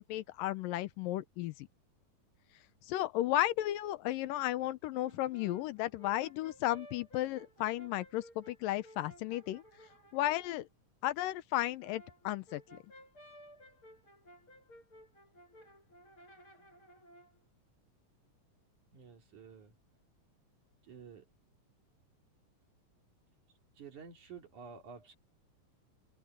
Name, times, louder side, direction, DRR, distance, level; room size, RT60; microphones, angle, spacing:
voice 1, 0.0-1.7 2.9-9.6 10.1-10.7 11.0-12.6, left 15 dB, 90° left, 2.5 m, -34 dB
Brass instrument, 5.0-10.6 11.6-17.4, equal, 35° left, 8.8 m, -57 dB
voice 2, 18.9-19.7 20.8-21.3 23.8-25.1, right 6 dB, 65° right, 4.3 m, -51 dB
open air
omnidirectional pair, 3.8 m